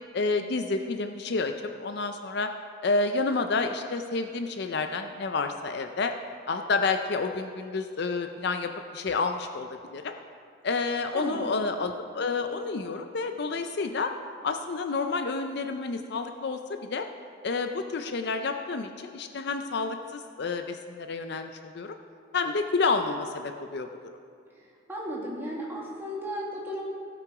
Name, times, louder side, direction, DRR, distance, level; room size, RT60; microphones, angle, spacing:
voice 1, 0.1-2.5 2.8-6.1 6.5-10.1 10.6-14.1 14.4-17.1 17.4-22.0 22.3-23.9, left 4 dB, 55° left, 6 dB, 0.5 m, -29 dB
voice 2, 11.1-11.5 24.6-26.8, equal, 10° right, -4 dB, 1.9 m, -35 dB
16.5 x 6.0 x 4.7 m, 2.3 s
head